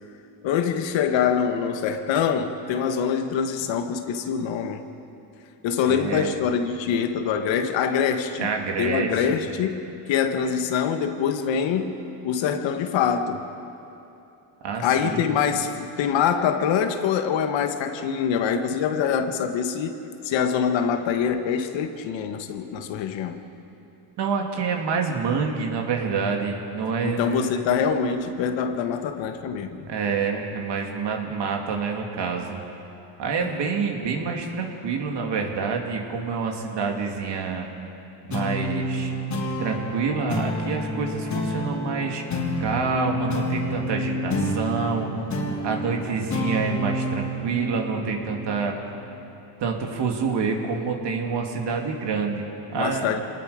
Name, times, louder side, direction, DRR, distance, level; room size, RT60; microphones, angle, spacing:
voice 1, 0.4-4.8 5.6-8.5 8.8-9.8 10.1-12.0 12.2-13.4 14.8-20.0 20.2-23.4 27.0-29.8 33.4-33.6 52.7-53.2, left 7 dB, 65° left, 7 dB, 1.6 m, -24 dB
voice 2, 5.8-6.3 8.4-9.3 14.6-15.2 24.2-27.2 29.9-32.6 33.2-37.7 38.2-39.1 39.6-42.2 42.6-45.1 45.6-48.7 49.6-53.2, right 5 dB, 60° right, 1 dB, 2.7 m, -27 dB
sound 1, 38.3-49.1, equal, 35° left, 3.5 m, -29 dB
26.5 x 19.5 x 5.2 m, 2.8 s
supercardioid pair, 95°, 48 cm